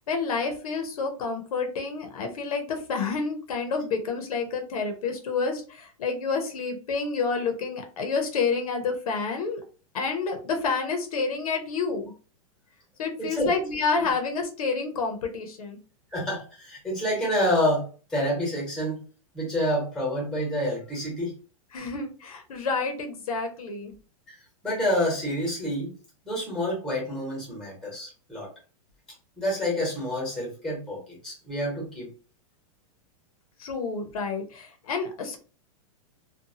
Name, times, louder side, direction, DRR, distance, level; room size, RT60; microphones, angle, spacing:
voice 1, 0.1-9.6 9.9-12.1 13.0-15.8 21.7-23.9 33.6-35.4, left 4 dB, 80° left, 5 dB, 0.8 m, -29 dB
voice 2, 13.2-13.5 16.1-19.0 19.3-21.3 24.3-24.4 24.6-25.9 26.2-28.5 29.4-32.1, equal, 5° left, -3 dB, 1.0 m, -28 dB
2.7 x 2.3 x 2.7 m, 0.37 s
supercardioid pair, 170°, 18 cm